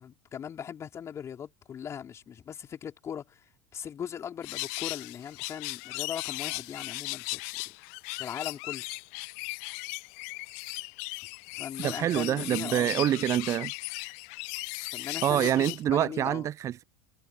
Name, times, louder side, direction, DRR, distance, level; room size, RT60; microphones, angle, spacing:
voice 1, 0.0-7.8 8.2-8.8 11.5-13.0 14.9-16.5, left 8 dB, 30° left, 4.6 m, -39 dB
sound 1, 4.4-15.8, left 33 dB, 55° left, 0.6 m, -37 dB
voice 2, 11.8-13.7 15.2-16.8, right 11 dB, 35° right, 0.5 m, -26 dB
hypercardioid pair, 80°, 9 cm